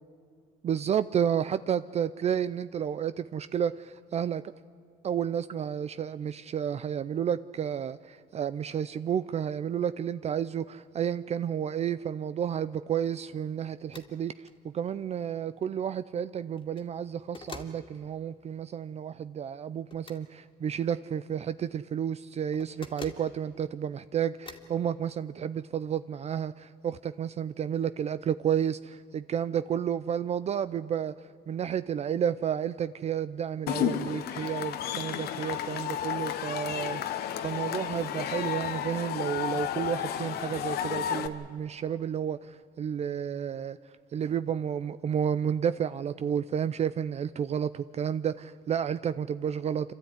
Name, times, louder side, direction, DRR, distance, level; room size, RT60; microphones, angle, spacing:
voice 1, 0.6-4.4 5.0-31.1 31.5-37.0 37.4-43.8 44.1-49.9, right 8 dB, 40° right, 14 dB, 0.5 m, -31 dB
sound 1, 13.9-14.1 14.5-14.6 16.5-16.9 17.3-17.8 19.9-20.2 22.5-23.3 24.5-24.7, left 3 dB, 30° left, 2.2 m, -45 dB
Cheering / Crowd, 33.7-41.3, left 10 dB, 70° left, 1.2 m, -32 dB
28.5 x 12.5 x 9.7 m, 2.4 s
cardioid pair, 110°, 17 cm